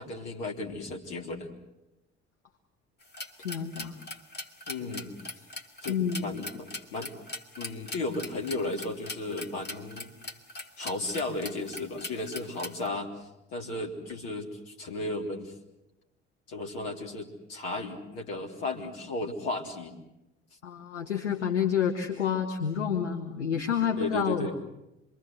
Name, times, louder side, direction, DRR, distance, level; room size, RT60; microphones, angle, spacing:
voice 1, 0.0-1.5 4.7-5.2 5.8-7.1 7.6-10.1 10.8-13.1 13.5-15.5 16.5-19.9 24.0-24.5, left 2 dB, 70° left, 2 dB, 3.5 m, -34 dB
sound 1, 3.0-12.9, left 2 dB, 30° left, 2.7 m, -41 dB
voice 2, 3.4-4.0 5.9-6.3 20.6-24.5, left 7 dB, 85° left, 4 dB, 1.4 m, -29 dB
27.0 x 22.5 x 8.0 m, 0.93 s
figure-of-eight pair, 50°, 34 cm